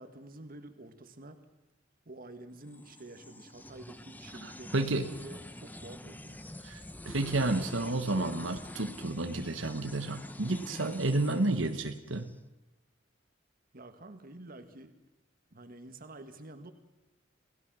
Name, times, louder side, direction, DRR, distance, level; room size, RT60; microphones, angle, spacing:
voice 1, 0.0-1.4 2.0-6.6 13.7-15.0 15.5-16.7, right 2 dB, 50° right, 8 dB, 1.7 m, -49 dB
sound 1, 2.6-12.3, left 1 dB, 10° left, 0.8 m, -46 dB
voice 2, 4.4-5.1 6.6-12.3, right 2 dB, 85° right, 7 dB, 1.3 m, -31 dB
28.0 x 16.5 x 6.3 m, 1.0 s
head